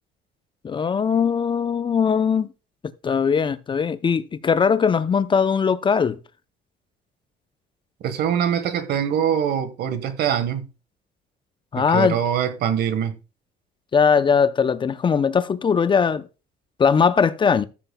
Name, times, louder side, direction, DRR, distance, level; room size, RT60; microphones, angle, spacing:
voice 1, 0.6-2.5 3.0-6.2 11.7-12.2 13.9-16.3 16.8-17.7, left 6 dB, 30° left, 0.6 m, -20 dB
voice 2, 8.0-10.7 11.8-13.2, right 9 dB, 75° right, 1.4 m, -23 dB
14.0 x 7.8 x 2.2 m
cardioid pair, 110°, 17 cm